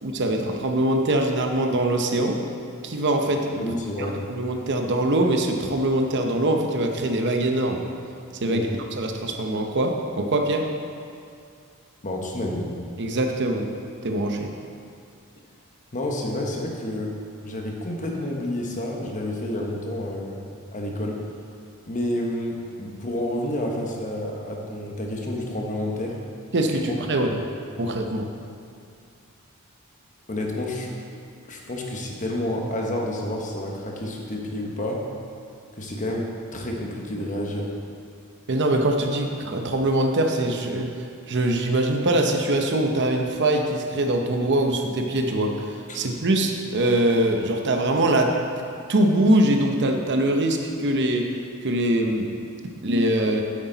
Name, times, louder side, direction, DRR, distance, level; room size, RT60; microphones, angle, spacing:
voice 1, 0.0-2.4 2.8-3.6 4.0-7.8 8.4-10.7 13.0-13.7 14.0-14.5 26.5-27.3 27.8-28.3 38.5-48.3 48.9-51.3 51.6-52.3 52.8-53.4, right 1 dB, 50° right, 3 dB, 0.8 m, -23 dB
voice 2, 3.6-4.2 8.4-8.7 12.0-12.7 15.9-17.1 17.4-20.5 20.7-21.2 21.9-26.1 27.3-27.4 30.3-30.9 31.5-35.0 35.8-37.7 45.9-46.0, left 1 dB, 35° left, 0 dB, 1.2 m, -29 dB
9.9 x 8.3 x 3.9 m, 2.4 s
head